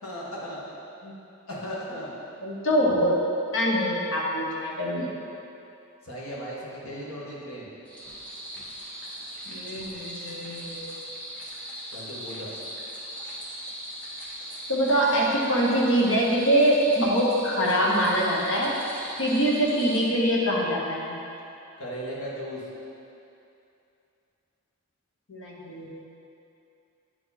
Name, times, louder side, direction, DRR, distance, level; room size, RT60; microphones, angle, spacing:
voice 1, 0.0-0.6 1.5-2.1 6.0-7.7 11.9-12.5 21.8-22.7, equal, 80° left, -6 dB, 1.8 m, -36 dB
voice 2, 2.4-3.2 3.5-5.1 9.5-10.9 14.7-18.7 19.2-21.1 25.3-25.9, equal, 60° left, -3 dB, 1.3 m, -24 dB
sound 1, 7.8-20.0, equal, 5° left, 1.3 m, -39 dB
9.6 x 4.9 x 4.2 m, 2.8 s
head